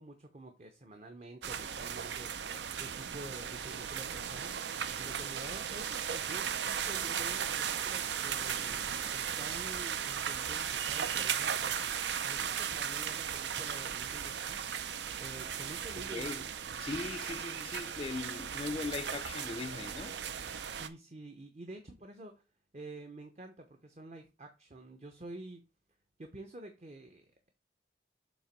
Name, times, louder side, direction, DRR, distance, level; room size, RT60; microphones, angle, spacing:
voice 1, 0.0-8.8 9.1-11.8 12.2-14.8 15.2-16.4 20.7-22.4 22.7-25.7 26.2-27.5, right 2 dB, 40° right, 0.7 m, -49 dB
sound 1, 1.4-20.9, right 8 dB, 85° right, 0.5 m, -36 dB
voice 2, 16.1-16.5 16.8-20.2, left 3 dB, 30° left, 0.3 m, -39 dB
7.2 x 3.0 x 5.2 m
head